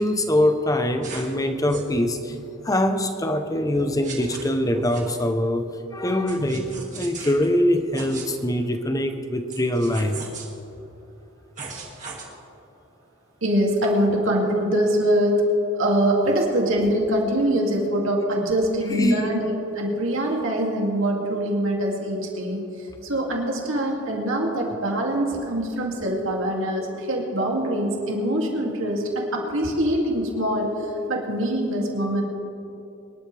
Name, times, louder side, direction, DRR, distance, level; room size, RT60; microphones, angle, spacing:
voice 1, 0.0-2.4 2.6-10.2 18.9-19.3, left 1 dB, 15° left, 7 dB, 0.8 m, -23 dB
sound 1, 1.0-1.3 1.7-1.9 3.7-5.3 6.3-7.5 7.9-8.3 9.5-10.5 11.6-12.2, right 3 dB, 35° right, 2.2 m, -37 dB
voice 2, 13.4-15.4 15.7-22.6 23.0-30.7 31.1-32.2, right 1 dB, 65° right, -1 dB, 2.6 m, -23 dB
24.5 x 11.5 x 3.4 m, 2.8 s
head